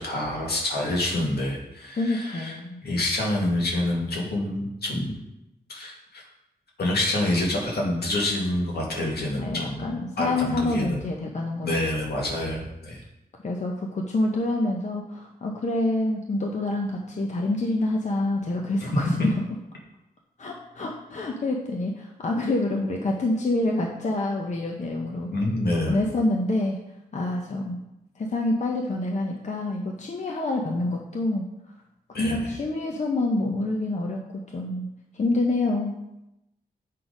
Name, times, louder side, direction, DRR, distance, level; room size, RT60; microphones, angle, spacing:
voice 1, 0.0-2.6 2.8-5.2 5.7-6.2 6.8-9.8 10.2-11.0 11.6-13.0 25.3-26.0 32.1-32.5, left 1 dB, 75° left, -2 dB, 1.8 m, -27 dB
voice 2, 2.0-2.8 9.4-11.7 13.4-19.3 20.4-25.3 25.9-26.8 27.1-27.8 28.2-31.4 32.1-34.2 34.5-34.9 35.1-35.9, left 2 dB, 45° left, 0 dB, 0.8 m, -27 dB
7.5 x 4.1 x 5.1 m, 0.89 s
wide cardioid pair, 125°, 17 cm